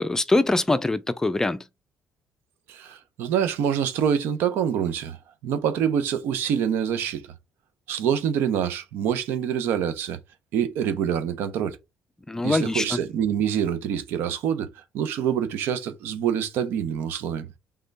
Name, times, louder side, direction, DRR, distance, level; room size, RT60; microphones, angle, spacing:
voice 1, 0.0-1.6 12.3-13.0, left 2 dB, 15° left, 0.5 m, -23 dB
voice 2, 2.7-5.2 5.4-7.3 7.9-10.2 10.5-11.8 12.4-17.5, right 8 dB, 80° right, 0.8 m, -26 dB
3.7 x 3.3 x 4.0 m
cardioid pair, 95°, 4 cm